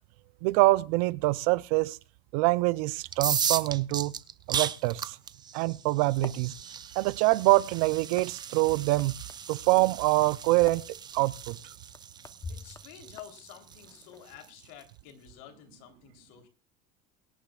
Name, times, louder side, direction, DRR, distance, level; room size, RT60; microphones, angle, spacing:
voice 1, 0.4-2.0 2.3-4.1 4.5-5.2 5.5-6.5 7.0-9.1 9.5-10.8 11.1-11.6, right 20 dB, 75° right, 0.6 m, -25 dB
sound 1, 3.1-14.8, right 8 dB, 25° right, 0.6 m, -36 dB
sound 2, 5.9-14.5, left 4 dB, 20° left, 0.9 m, -49 dB
voice 2, 12.5-16.5, left 10 dB, 70° left, 3.6 m, -50 dB
23.0 x 10.5 x 2.4 m
cardioid pair, 140°, 19 cm